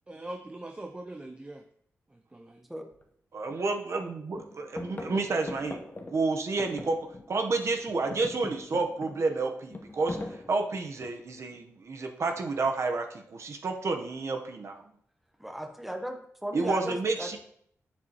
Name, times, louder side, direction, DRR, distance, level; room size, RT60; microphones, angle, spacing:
voice 1, 0.1-1.6 2.1-2.6, right 1 dB, 20° right, 4 dB, 0.5 m, -42 dB
sound 1, 2.9-3.0 3.5-4.0 4.3-7.5 7.8-11.4 12.4-12.8, left 2 dB, 35° left, 0.9 m, -42 dB
voice 2, 3.3-5.8 6.1-7.0 7.3-10.2 10.5-14.8 16.5-17.4, right 3 dB, 60° right, 4 dB, 0.9 m, -30 dB
voice 3, 15.4-17.4, equal, 5° right, 4 dB, 0.9 m, -36 dB
7.9 x 6.9 x 2.9 m, 0.66 s
wide cardioid pair, 100°, 6 cm